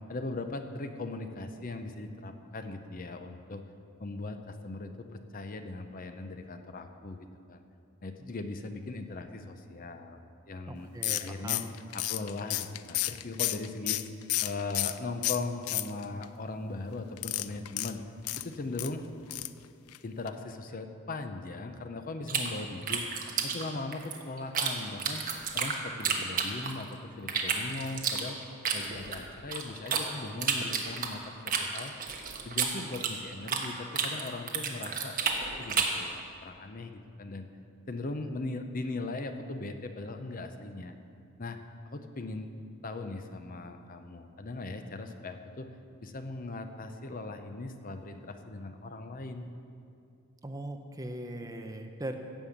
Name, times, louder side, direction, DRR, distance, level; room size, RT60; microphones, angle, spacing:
voice 1, 0.1-3.6 4.0-7.6 8.0-10.2 10.5-10.9 11.2-11.6 11.9-14.0 14.4-18.0 18.4-19.1 20.0-23.0 23.4-25.2 25.5-28.4 28.7-31.2 31.6-31.9 32.4-35.2 35.6-37.5 37.9-40.9 41.4-41.6 41.9-42.5 42.8-45.7 46.0-49.5, left 2 dB, 40° left, 7 dB, 0.6 m, -39 dB
voice 2, 10.7-11.7 50.4-52.2, right 1 dB, 15° right, 5 dB, 0.6 m, -40 dB
sound 1, 11.0-15.0 15.2-16.2 17.2-18.9 19.3-19.6 19.9-20.0 20.3-20.4, left 16 dB, 80° left, 0.4 m, -32 dB
sound 2, 22.3-24.7 25.0-26.9 27.3-30.0 30.4-33.7 33.9-36.0, right 6 dB, 40° right, 1.2 m, -31 dB
16.0 x 5.5 x 7.3 m, 2.5 s
head